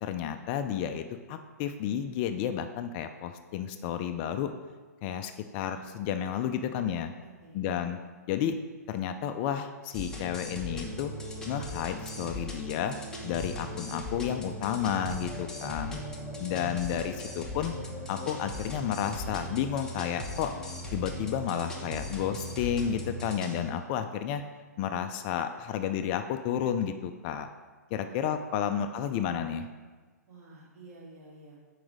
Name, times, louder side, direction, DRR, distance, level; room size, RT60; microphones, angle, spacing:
voice 1, 0.0-4.5 5.0-7.1 7.5-8.0 8.3-8.6 8.9-11.1 11.4-12.9 13.2-16.0 16.4-17.7 18.1-20.5 20.9-24.4 24.8-27.5 27.9-29.7, left 9 dB, 35° left, 8 dB, 0.4 m, -31 dB
voice 2, 7.2-7.9 16.3-17.1 27.9-28.2 28.5-28.6 30.3-31.6, right 2 dB, 50° right, -3 dB, 2.1 m, -52 dB
sound 1, 9.9-23.6, equal, 5° left, 1.0 m, -39 dB
6.1 x 4.8 x 4.9 m, 1.4 s
hypercardioid pair, 125°, 9 cm